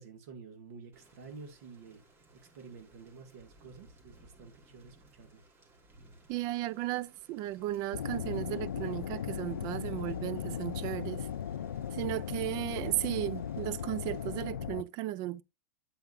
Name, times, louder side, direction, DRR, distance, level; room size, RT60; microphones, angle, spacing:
voice 1, 0.0-2.0 2.3-5.4, right 5 dB, 60° right, 2.2 m, -50 dB
Thunder / Rain, 0.9-14.4, right 2 dB, 25° right, 3.0 m, -61 dB
voice 2, 6.3-11.3 11.9-15.4, right 15 dB, 45° right, 0.6 m, -35 dB
sound 1, 7.9-14.8, left 8 dB, 85° left, 0.5 m, -37 dB
8.6 x 8.1 x 2.6 m
hypercardioid pair, 105°, 9 cm